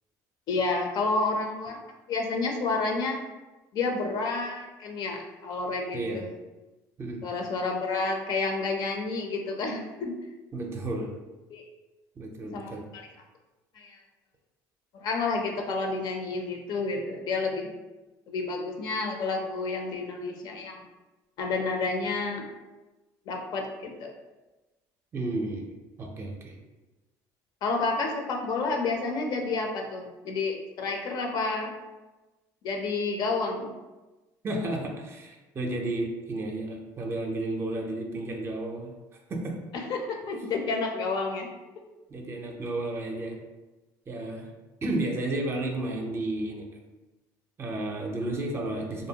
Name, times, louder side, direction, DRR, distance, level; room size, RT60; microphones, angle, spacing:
voice 1, 0.5-1.8 2.1-3.2 3.7-6.2 7.2-10.2 11.5-11.6 12.5-13.0 13.8-14.0 15.0-17.7 18.3-20.8 21.4-22.4 23.3-24.1 27.6-31.7 32.6-33.7 39.7-41.5, left 3 dB, 60° left, 2 dB, 0.5 m, -30 dB
voice 2, 10.5-11.1 12.2-12.8 25.1-25.7 26.0-26.5 34.4-38.9 39.3-39.5 42.1-43.4 44.1-44.5 44.8-46.7 47.6-49.1, right 2 dB, 30° right, 1 dB, 0.5 m, -32 dB
2.6 x 2.0 x 2.8 m, 1.1 s
supercardioid pair, 95°, 8 cm